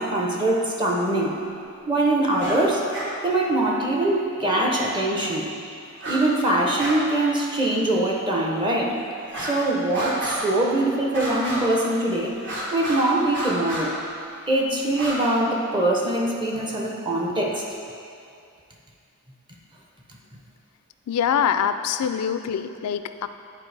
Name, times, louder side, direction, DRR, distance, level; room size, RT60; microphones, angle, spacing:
voice 1, 0.0-1.4 1.9-2.9 3.2-5.5 6.1-9.0 9.4-12.4 12.7-13.9 14.5-17.6, right 1 dB, 20° right, -1 dB, 0.6 m, -23 dB
sound 1, 2.3-2.6 2.9-3.1 4.7-4.8 5.9-6.2 6.5-7.0 7.3-7.4 8.1-8.2 9.2-9.6 9.9-10.6 11.1-11.8 12.4-13.0 13.3-13.9 14.9-15.2, right 1 dB, 55° right, 1.5 m, -31 dB
voice 2, 21.1-23.3, left 8 dB, 80° left, 11 dB, 0.3 m, -24 dB
10.5 x 4.4 x 3.3 m, 2.4 s
head